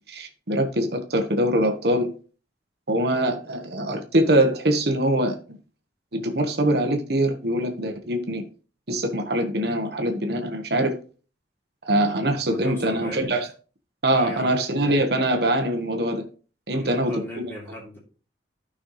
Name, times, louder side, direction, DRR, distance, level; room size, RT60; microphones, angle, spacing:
voice 1, 0.1-2.1 2.9-5.6 6.1-8.4 8.9-10.9 11.8-13.5 14.0-16.2 16.7-17.4, right 1 dB, 55° right, 1.2 m, -23 dB
voice 2, 12.2-13.3 14.1-14.5 16.7-18.0, equal, 10° left, 3.3 m, -38 dB
12.0 x 5.6 x 3.1 m
head